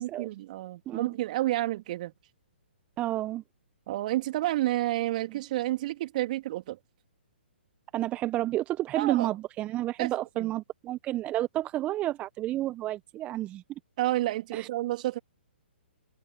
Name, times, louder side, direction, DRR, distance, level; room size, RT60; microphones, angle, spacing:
voice 1, 0.0-2.1 3.9-6.8 9.0-9.3 10.0-10.5 14.0-15.2, right 15 dB, 45° right, 3.2 m, -30 dB
voice 2, 3.0-3.4 7.9-13.6 14.5-14.7, right 14 dB, 20° right, 1.0 m, -30 dB
figure-of-eight pair, 130°, 6 cm